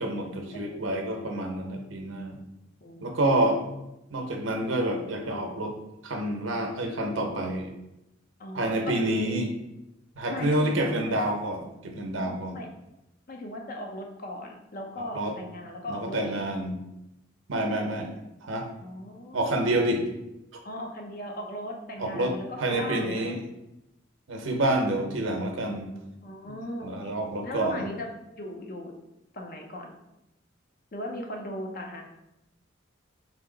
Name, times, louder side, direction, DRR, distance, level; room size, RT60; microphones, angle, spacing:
voice 1, 0.0-2.4 3.0-3.6 4.1-5.8 6.0-7.7 8.5-9.5 10.2-12.6 15.1-15.3 15.9-16.8 17.5-18.1 18.4-18.7 19.3-20.0 22.0-23.4 24.3-25.9 26.8-27.9, right 1 dB, 80° right, 3 dB, 0.7 m, -28 dB
voice 2, 0.5-1.2 2.8-3.1 6.7-7.0 8.4-9.0 10.3-11.1 12.2-12.7 13.3-16.4 17.7-17.9 18.8-19.6 20.6-23.3 26.2-27.1 27.4-28.1 28.4-28.9 29.3-29.9 30.9-32.0, equal, 50° left, 2 dB, 0.6 m, -38 dB
3.4 x 2.8 x 3.8 m, 0.90 s
head